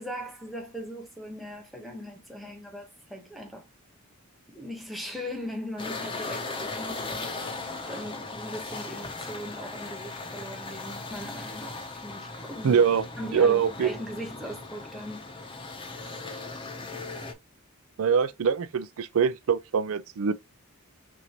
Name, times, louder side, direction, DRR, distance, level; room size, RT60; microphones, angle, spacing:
voice 1, 0.0-3.7 4.5-12.8 13.2-15.3, equal, ahead, 1.1 m, -39 dB
sound 1, 5.8-17.3, left 3 dB, 20° left, 0.7 m, -38 dB
voice 2, 12.6-13.1 13.3-13.9 18.0-20.3, right 6 dB, 65° right, 0.4 m, -23 dB
6.0 x 2.6 x 2.9 m
head